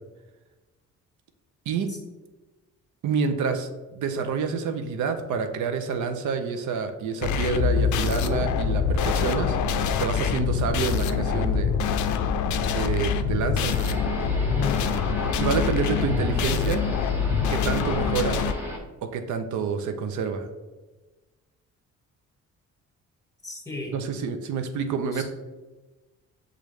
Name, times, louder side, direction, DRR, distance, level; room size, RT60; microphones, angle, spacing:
voice 1, 3.0-9.6 10.0-11.8 12.7-13.8 15.4-16.8 17.5-18.4 19.0-20.5 23.9-25.2, right 5 dB, 75° right, 7 dB, 0.6 m, -28 dB
sound 1, 7.2-18.5, left 6 dB, 75° left, 0.4 m, -25 dB
sound 2, 13.6-18.8, right 1 dB, 5° right, 1.1 m, -35 dB
voice 2, 14.5-15.0 23.4-24.0 25.1-25.2, left 4 dB, 10° left, 1 dB, 1.4 m, -33 dB
6.6 x 2.5 x 3.1 m, 1.2 s
cardioid pair, 90°, 30 cm